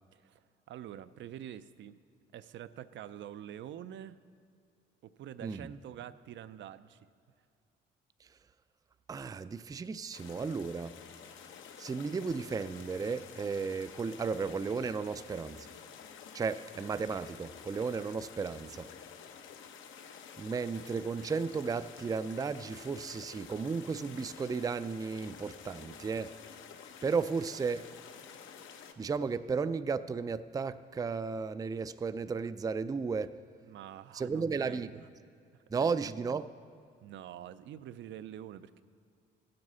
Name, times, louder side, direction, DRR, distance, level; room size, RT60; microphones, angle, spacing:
voice 1, 0.1-2.0 2.3-4.2 5.0-7.1 33.6-35.1 35.5-36.2 37.0-38.8, right 10 dB, 70° right, 13 dB, 0.5 m, -46 dB
voice 2, 9.1-10.9 11.8-15.7 16.3-18.9 20.4-26.3 27.0-27.9 29.0-33.4 34.1-34.9 35.7-36.5, right 5 dB, 20° right, 13 dB, 0.4 m, -34 dB
sound 1, 10.1-28.9, left 7 dB, 80° left, 1.0 m, -50 dB
14.0 x 7.8 x 5.5 m, 2.4 s
cardioid pair, 90°, 20 cm